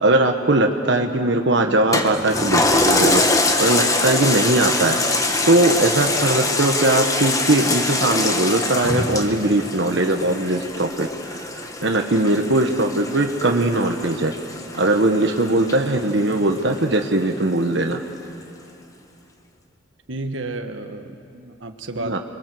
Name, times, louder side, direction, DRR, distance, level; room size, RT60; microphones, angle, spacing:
voice 1, 0.0-3.2 3.6-5.0 5.4-11.1 11.8-14.3 14.7-18.0 22.0-22.2, right 2 dB, 65° right, 3 dB, 1.3 m, -20 dB
Toilet flush, 1.9-16.7 17.2-17.3, left 2 dB, 20° left, 1.3 m, -24 dB
voice 2, 20.1-22.2, right 2 dB, 80° right, 6 dB, 1.4 m, -31 dB
29.5 x 22.0 x 7.8 m, 2.7 s
head